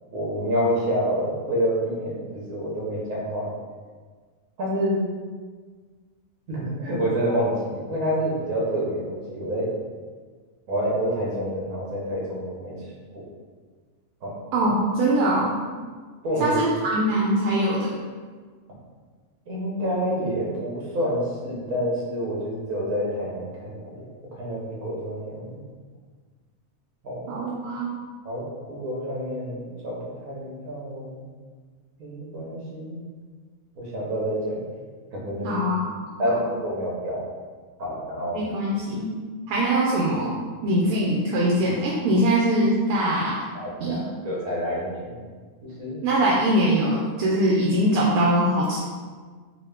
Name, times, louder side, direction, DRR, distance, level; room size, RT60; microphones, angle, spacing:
voice 1, 0.1-3.5 4.6-5.0 6.5-9.7 10.7-12.8 13.1-13.2 14.2-14.3 16.2-16.6 19.5-24.0 24.3-25.6 27.0-27.3 28.2-31.2 32.0-33.0 33.7-34.6 35.1-35.6 36.2-37.2 37.8-38.4 43.5-45.1 45.6-46.0, equal, 65° right, -5 dB, 1.4 m, -28 dB
voice 2, 14.5-15.5 16.4-17.9 27.3-28.0 35.4-36.3 38.3-39.2 39.5-40.3 40.6-43.4 43.8-44.0 46.0-48.8, right 1 dB, 85° right, -5 dB, 1.1 m, -22 dB
3.7 x 2.4 x 3.5 m, 1.5 s
omnidirectional pair, 1.5 m